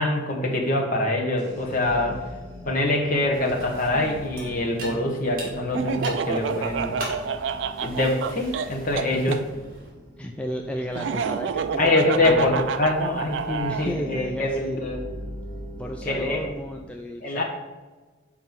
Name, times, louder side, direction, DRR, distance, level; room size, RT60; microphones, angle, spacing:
voice 1, 0.0-2.2 2.6-7.0 7.8-9.4 11.7-15.0 16.0-16.4 17.2-17.4, left 2 dB, 40° left, -1 dB, 1.4 m, -24 dB
sound 1, 1.4-16.8, equal, 25° right, 2.0 m, -42 dB
sound 2, 3.3-9.9, right 1 dB, 45° right, 2.3 m, -41 dB
Laughter, 5.7-9.4 10.9-13.9, right 6 dB, 65° right, 0.4 m, -29 dB
voice 2, 10.2-11.9 12.2-12.5 13.7-14.8 15.8-17.4, equal, 5° left, 2 dB, 0.3 m, -33 dB
7.4 x 4.4 x 5.8 m, 1.3 s
head